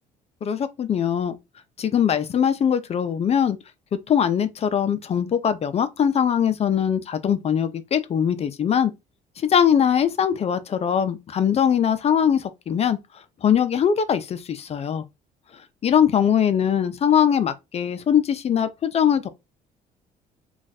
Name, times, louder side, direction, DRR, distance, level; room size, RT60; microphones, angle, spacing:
voice 1, 0.4-1.3 1.8-3.6 3.9-8.9 9.4-13.0 13.4-15.0 15.8-19.3, left 8 dB, 40° left, 0.5 m, -21 dB
2.5 x 2.4 x 4.1 m
cardioid pair, 110°, 17 cm